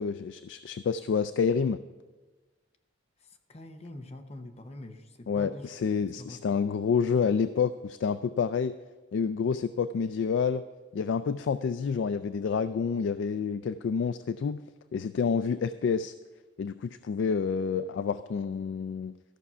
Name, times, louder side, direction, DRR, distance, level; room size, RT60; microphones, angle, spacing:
voice 1, 0.0-1.8 5.3-8.7 9.1-10.6 10.9-14.6 14.9-16.1 16.6-19.1, left 6 dB, 70° left, 13 dB, 0.3 m, -28 dB
voice 2, 3.5-5.7 6.2-6.6, left 1 dB, 35° left, 6 dB, 0.8 m, -44 dB
13.5 x 5.9 x 5.6 m, 1.3 s
head